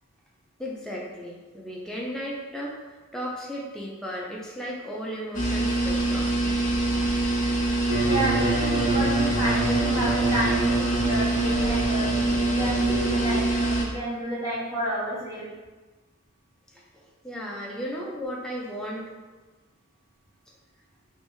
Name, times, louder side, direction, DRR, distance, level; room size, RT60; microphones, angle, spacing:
voice 1, 0.6-6.3 16.7-19.1, equal, 5° left, -4 dB, 0.4 m, -35 dB
sound 1, 5.3-13.8, right 2 dB, 35° left, 0.7 m, -24 dB
sound 2, 7.9-13.5, right 2 dB, 55° right, 0.6 m, -29 dB
voice 2, 8.0-15.5, right 1 dB, 15° right, -10 dB, 1.1 m, -30 dB
3.3 x 2.6 x 3.0 m, 1.3 s
head